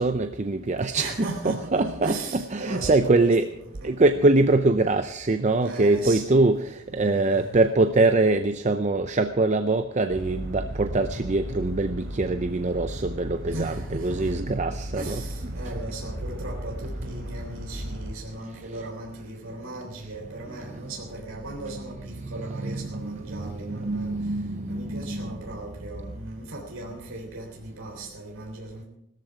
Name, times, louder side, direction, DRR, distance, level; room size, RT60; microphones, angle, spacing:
voice 1, 0.0-1.1 1.4-3.5 3.8-15.2 22.2-22.3 22.5-25.5, right 2 dB, 35° right, 9 dB, 0.5 m, -23 dB
voice 2, 0.9-3.5 3.8-3.9 5.6-6.5 6.9-7.6 13.4-14.3 14.9-24.1 24.7-28.8, right 2 dB, 75° right, 0 dB, 3.4 m, -37 dB
sound 1, 10.1-18.1, equal, 55° right, 3.0 m, -35 dB
17.0 x 13.5 x 4.8 m, 0.77 s
head